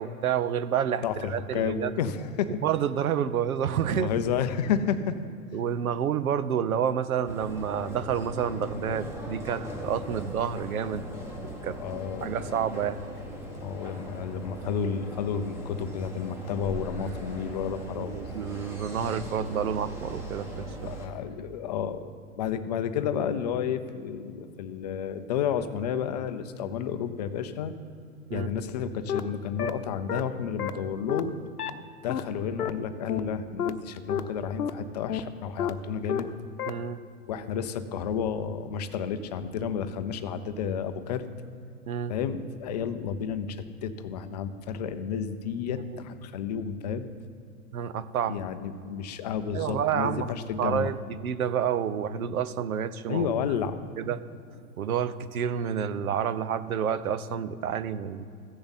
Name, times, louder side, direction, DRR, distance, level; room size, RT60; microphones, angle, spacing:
voice 1, 0.0-1.9 2.6-4.1 5.5-11.1 11.4-11.8 12.2-13.0 13.6-13.7 18.0-20.9 28.3-28.6 36.7-37.0 40.1-40.2 41.9-42.1 45.9-46.0 47.7-48.4 49.5-50.3 50.6-53.3 54.0-54.2 54.8-58.3, right 8 dB, 70° right, 13 dB, 0.8 m, -29 dB
voice 2, 1.0-2.6 3.9-5.3 11.8-12.4 13.6-18.1 20.8-27.7 28.3-31.4 32.0-36.3 37.3-41.2 42.1-47.1 48.3-50.9 53.1-53.8, left 7 dB, 30° left, 10 dB, 0.5 m, -31 dB
sound 1, 7.2-21.1, right 1 dB, 5° right, 1.4 m, -39 dB
sound 2, 28.7-28.8 29.1-29.2 29.6-29.7 30.1-30.2 30.6-30.7 31.1-31.2 31.6-31.7 32.1-32.2 32.6-32.7 33.1-33.2 33.6-33.7 34.1-34.2 34.6-34.7 35.1-35.2 35.6-35.7 36.1-36.2 36.6-36.7, left 9 dB, 80° left, 0.9 m, -29 dB
15.5 x 6.8 x 4.1 m, 2.5 s
hypercardioid pair, 130°, 45 cm